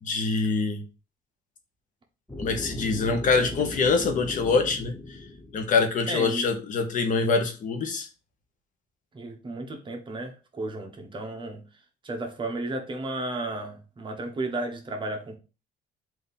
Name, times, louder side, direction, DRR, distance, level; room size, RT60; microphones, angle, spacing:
voice 1, 0.0-0.8 2.4-4.9 5.5-8.1, left 4 dB, 50° left, 0.9 m, -24 dB
sound 1, 2.3-6.2, left 1 dB, 5° left, 0.8 m, -38 dB
voice 2, 6.1-6.4 9.1-11.6 12.0-15.4, right 2 dB, 30° right, 0.9 m, -33 dB
3.5 x 2.7 x 4.1 m
cardioid pair, 110°, 17 cm